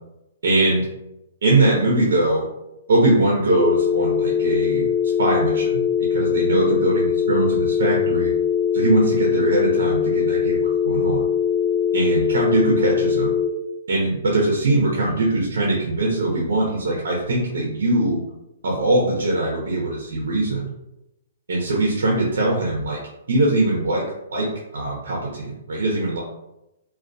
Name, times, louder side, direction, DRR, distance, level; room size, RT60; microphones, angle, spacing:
voice 1, 0.4-0.9 1.4-2.5 2.9-4.9 5.2-5.8 6.1-8.3 8.7-11.2 11.9-13.3 13.9-18.2 18.6-20.7 21.5-23.0 23.3-24.0 24.3-26.2, right 2 dB, 80° right, -2 dB, 0.6 m, -21 dB
sound 1, 3.5-13.5, left 8 dB, 25° left, 0.7 m, -21 dB
2.2 x 2.2 x 2.5 m, 0.91 s
hypercardioid pair, 155°, 0 cm